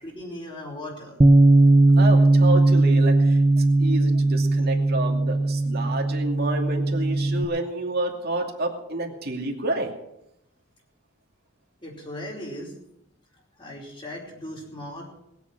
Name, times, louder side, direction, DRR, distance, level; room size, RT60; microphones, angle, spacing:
voice 1, 0.0-1.2 11.8-12.7 13.6-15.1, left 1 dB, 25° left, -1 dB, 4.8 m, -37 dB
Bass guitar, 1.2-7.5, right 2 dB, 20° right, 0.5 m, -18 dB
voice 2, 2.0-9.9, right 2 dB, 50° right, 1 dB, 2.6 m, -29 dB
20.5 x 8.3 x 6.1 m, 0.82 s
head